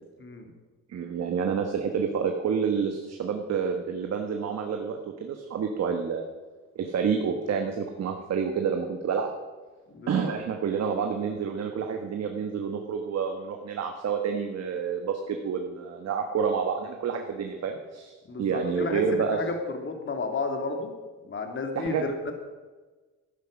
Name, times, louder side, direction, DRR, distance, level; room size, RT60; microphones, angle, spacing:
voice 1, 0.2-0.5 9.9-10.3 18.3-20.9 21.2-22.3, left 3 dB, 40° left, 4 dB, 2.6 m, -32 dB
voice 2, 0.9-6.3 6.7-9.3 10.1-19.4 21.7-22.0, right 6 dB, 60° right, 4 dB, 1.4 m, -29 dB
12.5 x 9.5 x 6.3 m, 1.3 s
cardioid pair, 90°, 30 cm